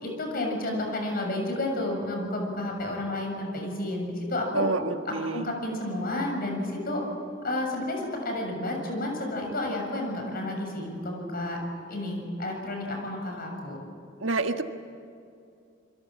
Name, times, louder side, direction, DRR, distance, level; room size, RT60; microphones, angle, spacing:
voice 1, 0.0-4.7 5.1-7.0 7.4-11.6 11.9-13.8, left 1 dB, 50° left, 2 dB, 7.0 m, -31 dB
voice 2, 4.5-5.4 14.2-14.6, right 3 dB, 80° right, 6 dB, 1.6 m, -28 dB
28.5 x 23.0 x 7.5 m, 2.6 s
head